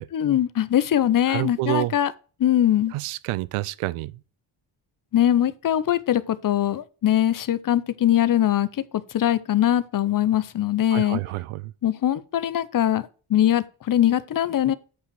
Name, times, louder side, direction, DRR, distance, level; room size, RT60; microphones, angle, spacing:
voice 1, 0.1-2.1 2.4-2.9 5.1-8.7 9.1-11.2 11.8-14.7, left 11 dB, 45° left, 0.6 m, -22 dB
voice 2, 1.3-1.9 2.9-4.1 10.9-11.7, right 17 dB, 85° right, 0.6 m, -28 dB
8.4 x 4.8 x 4.7 m
cardioid pair, 85°, 49 cm